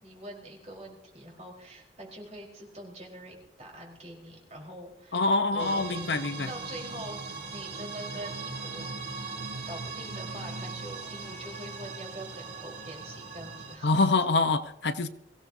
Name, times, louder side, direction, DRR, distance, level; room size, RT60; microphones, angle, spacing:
voice 1, 0.0-5.2 5.5-6.2 6.5-8.9 9.7-14.1, right 1 dB, 40° right, -2 dB, 4.3 m, -44 dB
voice 2, 5.1-6.5 13.8-15.1, left 3 dB, 70° left, 9 dB, 0.9 m, -25 dB
sound 1, 5.6-13.8, right 3 dB, 65° right, 5.1 m, -39 dB
23.5 x 16.0 x 2.7 m, 0.84 s
head